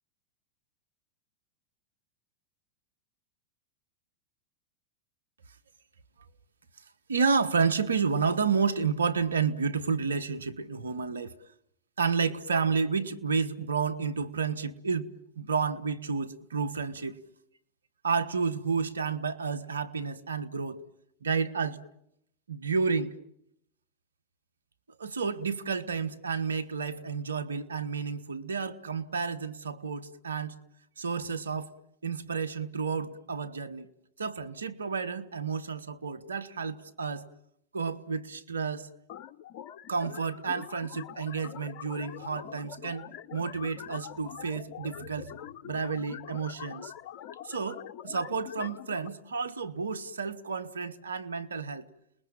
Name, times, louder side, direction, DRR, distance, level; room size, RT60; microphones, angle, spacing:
voice 1, 7.1-11.3 12.0-17.2 18.0-20.8 21.2-21.8 22.5-23.1 25.0-30.6 31.0-31.7 32.0-33.9 34.2-37.2 37.7-38.9 39.9-43.0 43.3-45.3 45.6-46.9 47.4-51.9, right 5 dB, 90° right, 1.4 m, -31 dB
sound 1, 39.1-49.1, left 11 dB, 55° left, 1.0 m, -44 dB
29.5 x 20.5 x 9.0 m
hypercardioid pair, 100°, 0 cm